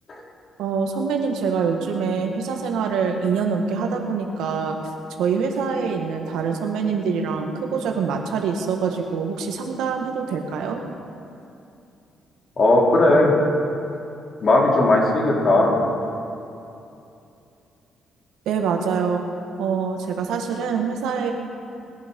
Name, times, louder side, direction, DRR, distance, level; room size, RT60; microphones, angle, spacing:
voice 1, 0.6-4.8 5.2-10.8 18.5-19.2 19.6-21.3, right 5 dB, 85° right, 3 dB, 1.7 m, -25 dB
voice 2, 12.6-13.3 14.4-15.7, left 2 dB, 45° left, -2 dB, 3.7 m, -17 dB
21.0 x 10.5 x 5.4 m, 2.6 s
cardioid pair, 90°, 0 cm